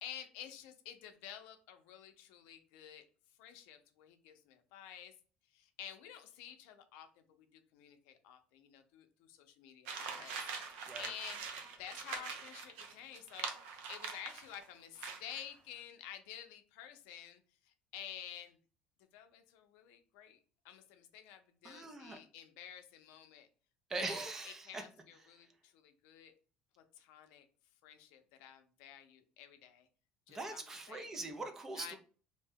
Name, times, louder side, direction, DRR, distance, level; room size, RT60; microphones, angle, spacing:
voice 1, 0.0-3.0 3.4-5.1 5.5-10.4 10.7-11.4 11.8-18.6 19.1-20.4 20.6-23.5 24.0-26.3 26.8-27.5 27.8-29.9 30.3-31.1 31.8-32.0, left 10 dB, 85° left, 8 dB, 0.5 m, -51 dB
sound 1, 9.9-14.6 15.0-15.5, right 5 dB, 80° right, 0.5 m, -44 dB
voice 2, 21.6-22.2 23.9-24.8 30.3-32.0, right 2 dB, 15° right, 6 dB, 0.4 m, -42 dB
2.6 x 2.1 x 3.4 m, 0.39 s
cardioid pair, 175°, 3 cm